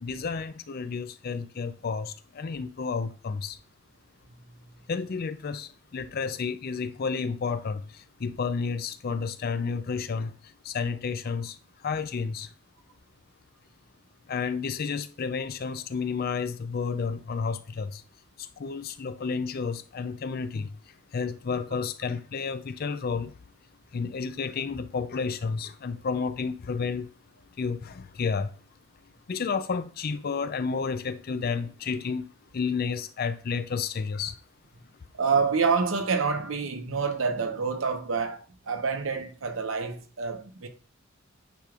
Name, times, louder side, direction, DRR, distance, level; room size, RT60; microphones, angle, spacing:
voice 1, 0.0-3.6 4.9-10.3 10.6-11.6 11.8-12.5 14.3-18.0 18.4-20.7 21.1-23.3 23.9-27.1 27.6-28.5 29.3-32.3 32.5-34.4, left 5 dB, 45° left, 0.4 m, -31 dB
voice 2, 35.1-40.7, right 5 dB, 75° right, 0.8 m, -27 dB
9.2 x 5.1 x 2.4 m
head